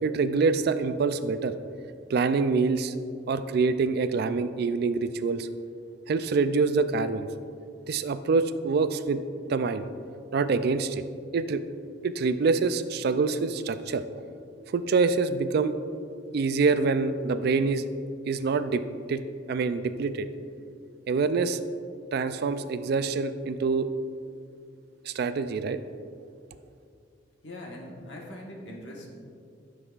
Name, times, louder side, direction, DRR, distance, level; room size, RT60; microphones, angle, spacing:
voice 1, 0.0-1.5 2.1-2.9 3.3-5.5 6.1-7.3 7.9-9.2 9.5-9.9 10.3-11.0 11.3-11.6 12.0-14.0 14.7-15.8 16.3-17.8 18.3-18.8 19.1-19.2 19.5-20.3 21.1-21.6 22.1-23.9 25.0-25.8, right 4 dB, 55° right, 11 dB, 0.3 m, -25 dB
voice 2, 27.4-29.1, left 1 dB, 65° left, -1 dB, 1.3 m, -41 dB
11.0 x 6.2 x 2.4 m, 2.4 s
head